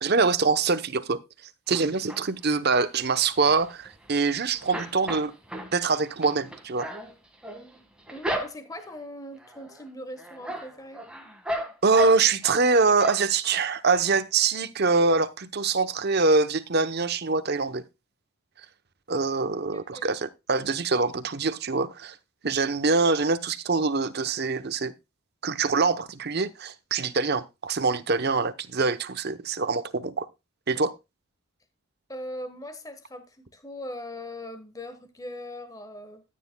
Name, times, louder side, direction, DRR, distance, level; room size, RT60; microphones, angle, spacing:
voice 1, 0.0-1.2 1.7-5.3 5.7-6.9 11.8-17.8 19.1-22.2 22.4-24.9 25.4-30.3 30.7-30.9, right 4 dB, 45° right, 0.8 m, -24 dB
sound 1, 1.7-2.5 2.9-4.3 4.5-8.9 9.4-9.9 10.2-12.6 13.0-13.6 14.0-14.1 14.4-14.5, equal, 5° right, 1.7 m, -35 dB
voice 2, 8.1-11.0 19.7-20.1 32.1-36.2, left 1 dB, 15° left, 1.3 m, -40 dB
13.5 x 9.4 x 2.2 m
head